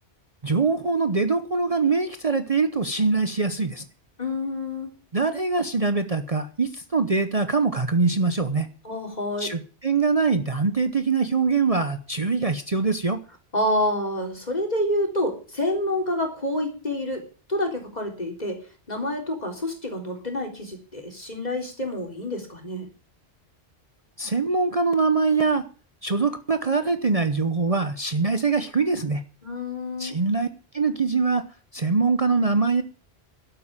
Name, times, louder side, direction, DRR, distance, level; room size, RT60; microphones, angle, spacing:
voice 1, 0.4-3.8 5.1-8.7 9.4-13.2 24.2-25.6 26.0-29.2 30.0-30.5 30.7-31.4 31.7-32.8, right 4 dB, 35° right, 9 dB, 0.9 m, -23 dB
voice 2, 4.2-4.9 8.8-9.5 13.5-17.2 17.5-18.6 18.9-22.9 29.4-30.2, left 1 dB, 40° left, 2 dB, 3.9 m, -28 dB
12.0 x 8.5 x 8.8 m, 0.39 s
omnidirectional pair, 1.1 m